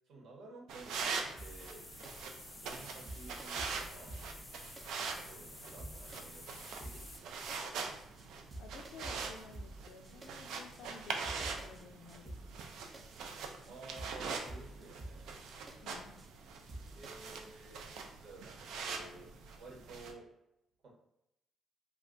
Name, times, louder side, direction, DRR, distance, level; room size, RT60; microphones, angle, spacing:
voice 1, 0.1-1.9 2.5-4.2 4.8-7.9 13.7-15.4 16.9-19.3 19.5-20.3 20.8-20.9, right 2 dB, 70° right, -1 dB, 1.0 m, -53 dB
sound 1, 0.7-20.1, right 5 dB, 85° right, 0.4 m, -43 dB
sound 2, 1.4-7.2, left 2 dB, 25° left, 0.5 m, -52 dB
sound 3, 1.4-1.7 2.0-2.3 2.5-2.8 3.1-4.9 5.3-5.4 5.8-6.4 6.6-7.2 7.5-7.7 8.0-8.3 8.5-10.3 10.7-10.8 11.2-11.8 12.1-12.6 12.9-13.2 13.5-13.7 14.0-15.8 16.2-16.3 16.7-17.3, right 1 dB, 30° right, 0.6 m, -49 dB
voice 2, 8.6-12.7 15.8-16.3, left 5 dB, 75° left, 6 dB, 0.4 m, -54 dB
2.3 x 2.2 x 3.8 m, 0.85 s
cardioid pair, 90°, 0 cm